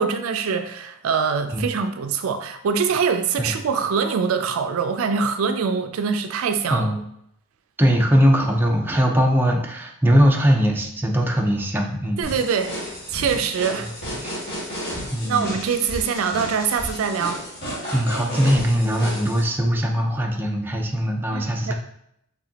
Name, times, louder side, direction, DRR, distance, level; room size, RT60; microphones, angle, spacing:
voice 1, 0.0-6.9 12.2-13.9 15.2-17.4 21.3-21.7, right 6 dB, 70° right, 8 dB, 0.4 m, -24 dB
voice 2, 6.7-7.0 7.8-12.3 14.2-14.4 15.1-15.5 17.9-21.7, equal, 10° right, 0 dB, 0.5 m, -20 dB
sound 1, 12.2-19.4, equal, 50° left, 1.7 m, -32 dB
4.9 x 3.5 x 2.8 m, 0.75 s
head